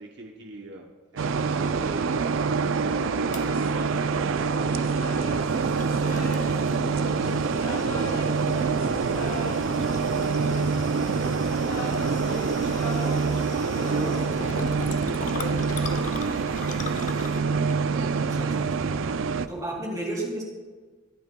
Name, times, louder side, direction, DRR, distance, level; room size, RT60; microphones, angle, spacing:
voice 1, 0.0-6.3 6.6-10.7 11.8-14.8, right 1 dB, 60° right, 1 dB, 0.9 m, -43 dB
sound 1, 1.2-19.5, right 5 dB, 85° right, 0.4 m, -26 dB
sound 2, 3.3-10.9 11.5-16.1, left 2 dB, 85° left, 2.0 m, -40 dB
sound 3, 3.3-19.6, left 3 dB, 40° left, 0.8 m, -40 dB
voice 2, 13.8-14.2 18.1-18.9 19.5-20.4, right 1 dB, 20° right, -2 dB, 2.7 m, -33 dB
23.0 x 8.3 x 2.3 m, 1.3 s
head